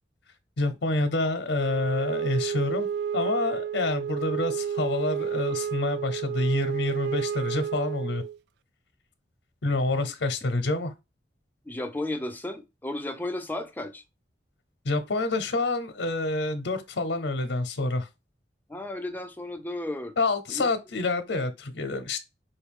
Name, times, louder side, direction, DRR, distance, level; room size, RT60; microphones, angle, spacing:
voice 1, 0.6-2.9 3.1-8.2 9.6-10.9 14.8-18.1 20.2-22.2, left 2 dB, 85° left, 0.7 m, -27 dB
Wind instrument woodwind instrument, 1.6-8.4, right 8 dB, 65° right, 0.3 m, -31 dB
voice 2, 11.7-14.0 18.7-20.1 20.5-20.7, left 1 dB, 10° left, 0.6 m, -34 dB
5.2 x 2.3 x 3.6 m
head